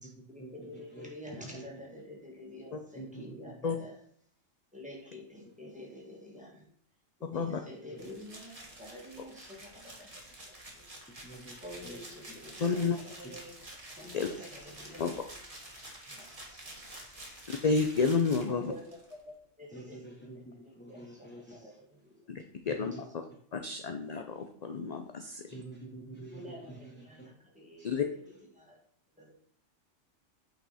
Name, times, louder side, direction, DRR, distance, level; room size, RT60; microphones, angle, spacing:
voice 1, 0.0-3.9 4.7-6.7 7.2-10.1 10.5-10.9 11.2-11.3 11.6-13.6 13.9-15.1 15.5-17.3 18.5-18.9 19.3-22.3 26.3-27.9 28.5-28.8 29.2-29.3, left 1 dB, 5° right, -2 dB, 2.2 m, -48 dB
voice 2, 3.0-3.5 11.2-11.5 11.8-12.0 19.7-21.6 22.7-22.9 25.5-26.4 26.7-27.3 27.8-27.9, right 2 dB, 10° left, -1 dB, 1.0 m, -47 dB
sound 1, 8.0-19.1, right 1 dB, 30° right, 1.8 m, -49 dB
voice 3, 12.6-13.0 14.1-14.3 15.0-15.2 17.5-18.7 22.3-23.2 23.5-25.5 27.8-28.1, left 5 dB, 45° left, 6 dB, 0.6 m, -30 dB
8.8 x 5.8 x 4.2 m, 0.63 s
omnidirectional pair, 1.3 m